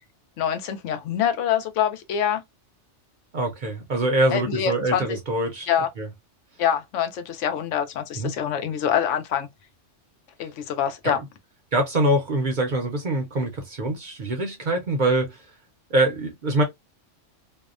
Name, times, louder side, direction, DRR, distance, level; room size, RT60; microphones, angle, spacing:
voice 1, 0.4-2.4 4.3-5.0 5.7-5.9 6.6-9.5 10.4-11.2, left 9 dB, 80° left, 0.9 m, -25 dB
voice 2, 3.3-5.7 6.0-6.1 8.2-8.3 11.0-11.2 11.7-15.5 15.9-16.6, right 1 dB, 50° right, 0.6 m, -24 dB
2.7 x 2.1 x 2.4 m
omnidirectional pair, 1.2 m